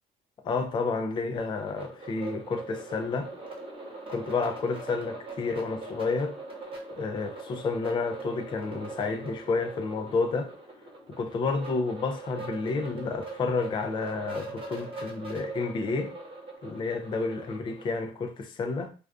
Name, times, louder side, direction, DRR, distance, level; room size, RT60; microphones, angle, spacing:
voice 1, 0.4-3.3 4.1-6.4 7.0-10.5 11.1-16.1 16.6-18.9, left 4 dB, 30° left, 0.3 m, -30 dB
sound 1, 1.4-18.1, right 3 dB, 30° right, 0.9 m, -42 dB
2.4 x 2.2 x 2.4 m
cardioid pair, 110°, 17 cm